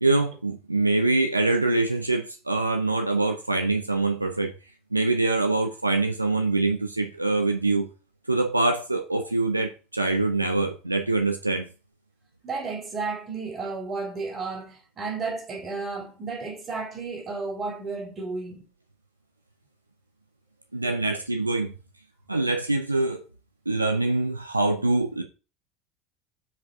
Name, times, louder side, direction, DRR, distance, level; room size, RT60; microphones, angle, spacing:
voice 1, 0.0-4.5 4.9-7.9 8.3-11.7 20.7-21.7 22.3-23.2 23.7-25.2, right 2 dB, 90° right, 0.7 m, -24 dB
voice 2, 12.4-18.6, right 4 dB, 35° right, 3.2 m, -33 dB
5.9 x 5.0 x 5.8 m
figure-of-eight pair, 65°, 0 cm